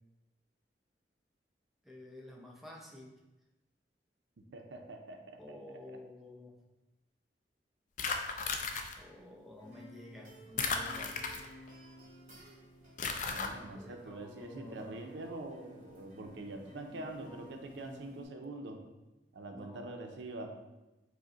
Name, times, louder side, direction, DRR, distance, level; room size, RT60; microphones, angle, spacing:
voice 1, 1.8-3.1 5.4-6.6 9.0-11.2 13.7-15.0 16.8-18.4 19.5-20.1, left 1 dB, ahead, -2 dB, 0.6 m, -51 dB
voice 2, 4.5-5.6 5.9-6.0 13.3-18.8 19.3-20.6, right 2 dB, 90° right, 4 dB, 0.5 m, -44 dB
sound 1, 8.0-8.9 10.6-11.7 13.0-13.5, left 5 dB, 45° left, 0.4 m, -35 dB
sound 2, 9.6-18.2, equal, 50° right, 1.3 m, -56 dB
5.1 x 2.1 x 3.8 m, 1.0 s
head